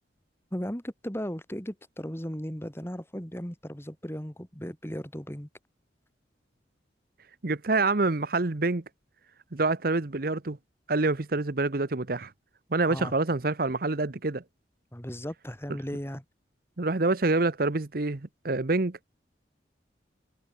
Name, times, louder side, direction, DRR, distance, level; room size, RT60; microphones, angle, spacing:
voice 1, 0.5-5.5 12.9-13.1 14.9-16.2, equal, 15° left, 2.9 m, -36 dB
voice 2, 7.4-8.8 9.5-10.6 10.9-12.3 12.7-14.4 16.8-19.0, right 3 dB, 50° right, 1.0 m, -26 dB
head